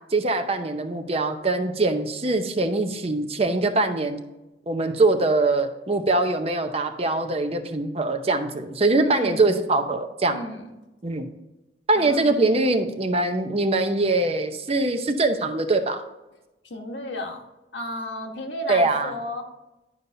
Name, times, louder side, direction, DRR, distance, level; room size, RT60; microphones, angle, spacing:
voice 1, 0.1-4.2 4.7-10.4 11.0-11.3 11.9-16.0 18.7-19.1, right 2 dB, 30° right, 7 dB, 0.7 m, -23 dB
voice 2, 8.9-9.6 10.3-10.7 11.9-12.5 16.6-17.4 17.7-19.4, left 1 dB, 75° left, 2 dB, 1.3 m, -33 dB
11.0 x 5.5 x 2.7 m, 0.98 s
head